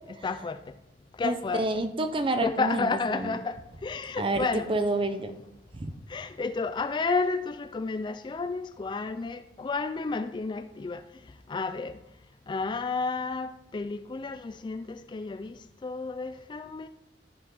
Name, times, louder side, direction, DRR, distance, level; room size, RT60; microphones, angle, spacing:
voice 1, 0.1-0.8 1.1-1.8 2.4-4.7 6.1-11.0 11.5-12.0 12.5-16.9, left 4 dB, 25° left, 0.3 m, -31 dB
voice 2, 1.2-3.4 4.2-5.3 5.8-5.9, right 2 dB, 30° right, 0.7 m, -29 dB
12.5 x 5.6 x 4.0 m
head